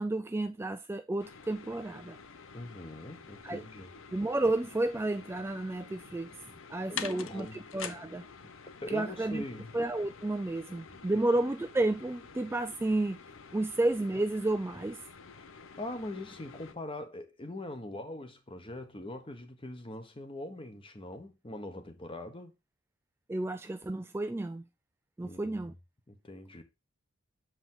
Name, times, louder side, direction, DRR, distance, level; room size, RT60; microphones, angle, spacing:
voice 1, 0.0-2.2 3.4-3.6 4.1-6.3 6.7-7.5 7.7-8.2 8.9-9.4 9.7-13.2 13.5-15.0 23.3-24.6 25.2-25.7, right 2 dB, 10° right, 0.3 m, -31 dB
sound 1, 1.2-16.7, left 6 dB, 65° left, 0.7 m, -48 dB
voice 2, 2.5-3.9 6.9-7.7 8.7-9.7 11.1-11.2 15.3-15.4 15.8-22.5 25.2-25.7 26.1-26.6, left 1 dB, 25° left, 1.1 m, -42 dB
7.5 x 5.0 x 3.7 m
head